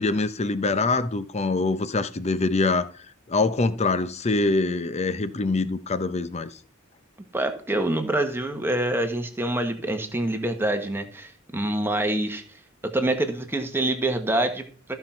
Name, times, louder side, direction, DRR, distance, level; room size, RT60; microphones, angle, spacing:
voice 1, 0.0-2.9 3.3-6.6, left 3 dB, 30° left, 0.7 m, -24 dB
voice 2, 7.3-12.4 12.8-15.0, right 1 dB, 10° right, 1.3 m, -26 dB
14.0 x 5.7 x 4.5 m
head